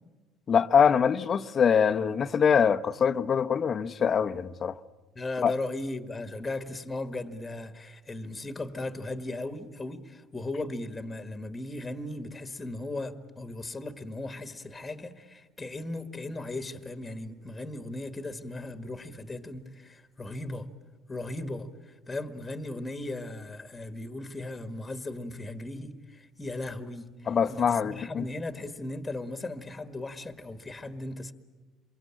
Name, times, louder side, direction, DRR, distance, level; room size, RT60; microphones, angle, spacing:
voice 1, 0.5-4.8 5.4-5.5 27.3-28.3, left 7 dB, 35° left, 0.9 m, -24 dB
voice 2, 5.1-20.7 21.1-31.3, left 2 dB, 15° left, 1.6 m, -37 dB
27.5 x 23.5 x 8.9 m
cardioid pair, 130°, 0 cm